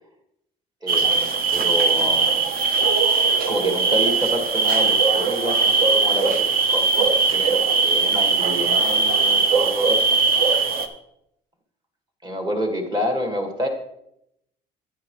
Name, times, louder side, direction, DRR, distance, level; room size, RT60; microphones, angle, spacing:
voice 1, 0.8-2.4 3.4-10.1 12.2-13.7, equal, 25° right, 3 dB, 1.8 m, -28 dB
sound 1, 0.9-10.9, right 4 dB, 60° right, 0.9 m, -20 dB
10.5 x 9.4 x 3.1 m, 0.79 s
cardioid pair, 110°, 17 cm